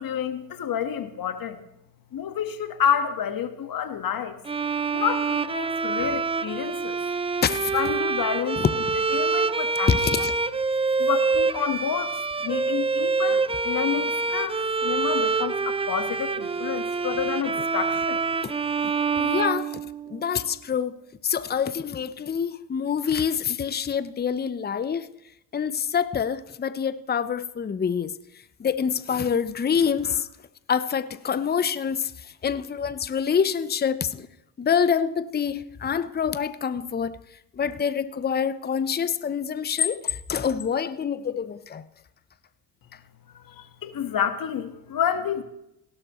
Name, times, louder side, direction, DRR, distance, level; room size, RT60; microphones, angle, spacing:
voice 1, 0.0-1.6 2.1-4.4 4.9-7.0 7.7-8.6 9.1-9.9 11.0-18.2 43.3-45.4, left 8 dB, 50° left, 1.6 m, -29 dB
Bowed string instrument, 4.5-20.3, right 4 dB, 15° right, 0.5 m, -26 dB
voice 2, 7.4-7.7 8.6-8.9 9.9-10.3 17.6-17.7 18.4-18.5 18.8-19.8 20.1-21.0 21.2-25.1 25.5-28.1 28.6-30.3 30.7-34.3 34.6-37.2 37.5-41.8, left 7 dB, 20° left, 0.7 m, -26 dB
17.0 x 12.0 x 3.1 m
hypercardioid pair, 55°, 44 cm